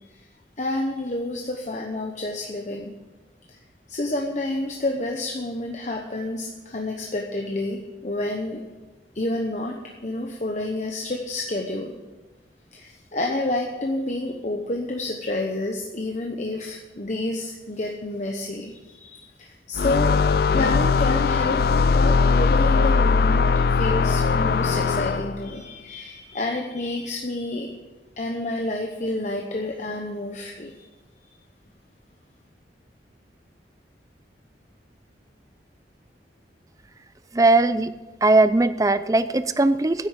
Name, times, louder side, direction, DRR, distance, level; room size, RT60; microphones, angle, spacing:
voice 1, 0.6-2.9 3.9-8.6 9.1-11.9 12.7-20.2 20.5-27.7 28.2-30.8, left 2 dB, 40° left, 2 dB, 0.9 m, -29 dB
sound 1, 19.8-25.5, left 4 dB, 60° left, 0.4 m, -20 dB
voice 2, 37.3-37.9 38.2-40.1, right 2 dB, 20° right, 13 dB, 0.4 m, -19 dB
10.5 x 8.3 x 8.1 m, 1.2 s
head